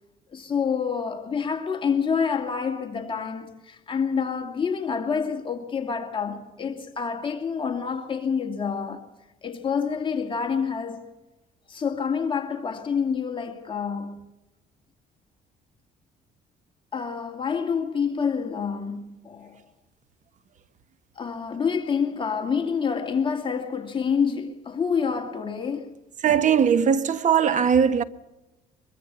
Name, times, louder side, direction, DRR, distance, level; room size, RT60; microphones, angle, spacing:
voice 1, 0.3-9.0 9.4-11.0 11.7-14.2 16.9-19.6 21.2-25.9, left 6 dB, 30° left, 2.4 m, -27 dB
voice 2, 26.2-28.0, right 7 dB, 45° right, 1.3 m, -20 dB
23.5 x 22.5 x 7.0 m
cardioid pair, 110°, 17 cm